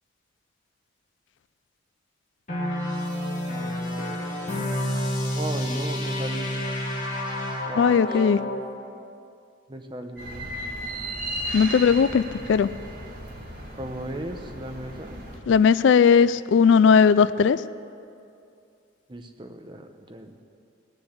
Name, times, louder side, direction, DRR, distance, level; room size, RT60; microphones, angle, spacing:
sound 1, 2.5-8.7, left 1 dB, 35° left, 2.2 m, -29 dB
voice 1, 5.3-6.5 7.6-8.3 9.7-10.5 13.8-15.2 19.1-20.4, right 1 dB, 25° right, 5 dB, 0.9 m, -36 dB
voice 2, 7.8-8.4 11.5-12.2 12.5-12.7 15.5-17.6, left 6 dB, 65° left, 16 dB, 0.3 m, -17 dB
sound 2, 10.2-15.4, right 1 dB, 45° right, 2.4 m, -35 dB
19.5 x 6.9 x 8.0 m, 2.5 s
head